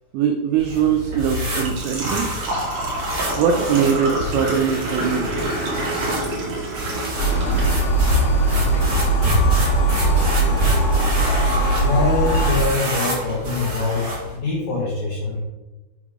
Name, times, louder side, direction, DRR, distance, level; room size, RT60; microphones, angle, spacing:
voice 1, 0.1-2.3 3.4-5.3, right 7 dB, 85° right, 5 dB, 2.5 m, -21 dB
Engine / Trickle dribble / Fill (with liquid), 0.5-12.5, right 2 dB, 65° right, 1.8 m, -30 dB
sound 1, 0.6-14.4, equal, 45° right, 1.2 m, -26 dB
sound 2, 7.2-12.7, right 2 dB, 55° left, 2.6 m, -20 dB
voice 2, 11.8-14.1 14.3-15.4, left 3 dB, 75° left, -6 dB, 2.0 m, -23 dB
7.0 x 3.7 x 4.8 m, 1.1 s
omnidirectional pair, 5.6 m